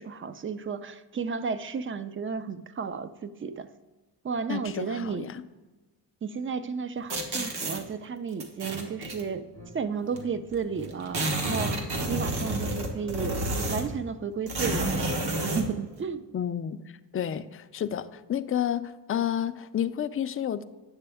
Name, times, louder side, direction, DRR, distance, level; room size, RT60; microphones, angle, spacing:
voice 1, 0.0-3.7 4.2-5.2 6.2-9.4 9.7-11.8 12.1-13.4 13.7-16.2, right 6 dB, 30° right, 13 dB, 0.4 m, -33 dB
voice 2, 4.5-5.4 16.3-16.8 17.1-20.6, left 9 dB, 35° left, 11 dB, 0.4 m, -30 dB
sound 1, 7.1-7.8 8.4-9.2 10.2-10.3 10.5-10.6 10.8-14.0 14.5-15.7, right 1 dB, 65° right, 1.4 m, -30 dB
sound 2, 8.6-8.8 9.1-10.3 10.6-11.2 11.5-13.4, left 1 dB, 90° right, 2.5 m, -48 dB
9.6 x 6.8 x 3.4 m, 1.2 s
cardioid pair, 105°, 43 cm